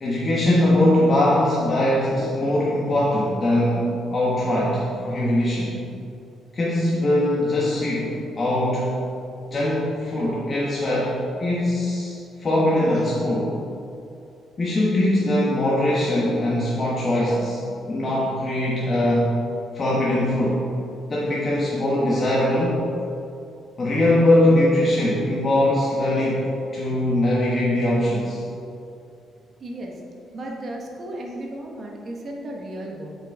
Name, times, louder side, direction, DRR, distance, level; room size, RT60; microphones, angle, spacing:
voice 1, 0.0-5.8 6.5-9.0 9.5-11.1 11.4-13.5 14.6-19.3 19.7-20.7 21.1-22.8 23.8-26.5 26.7-28.4, left 1 dB, 40° left, -6 dB, 1.2 m, -21 dB
voice 2, 29.6-30.0 30.3-33.1, right 1 dB, 50° right, -1 dB, 1.3 m, -34 dB
8.7 x 5.4 x 3.6 m, 2.6 s
cardioid pair, 90°, 0 cm